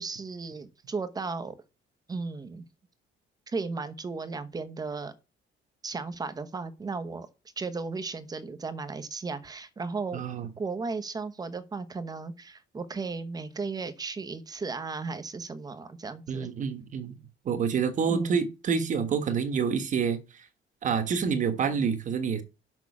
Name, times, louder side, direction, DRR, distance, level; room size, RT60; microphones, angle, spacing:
voice 1, 0.0-1.6 2.1-2.6 3.5-5.1 5.8-7.3 7.6-10.2 10.6-16.5 18.1-18.5, right 4 dB, 20° right, 0.9 m, -35 dB
voice 2, 10.1-10.5 16.3-17.2 17.4-20.2 20.8-22.4, right 6 dB, 40° right, 1.3 m, -27 dB
6.2 x 6.1 x 7.1 m
cardioid pair, 175°, 21 cm